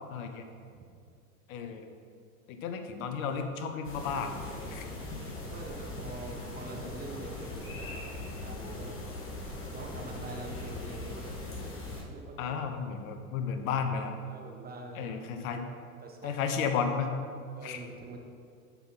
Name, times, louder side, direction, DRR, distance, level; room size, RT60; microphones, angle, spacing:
voice 1, 0.1-0.4 1.5-1.9 2.5-4.8 12.4-14.2 15.0-15.6 16.2-17.1 17.6-17.8, left 6 dB, 70° left, 6 dB, 1.2 m, -33 dB
sound 1, 3.8-12.0, left 2 dB, 30° left, 2.5 m, -40 dB
voice 2, 4.6-9.0 9.7-11.7 12.1-12.6 14.3-15.2 15.6-15.7 16.0-16.3 17.5-18.2, right 2 dB, 20° right, 1 dB, 1.5 m, -45 dB
11.5 x 5.6 x 4.4 m, 2.3 s
hypercardioid pair, 100°, 43 cm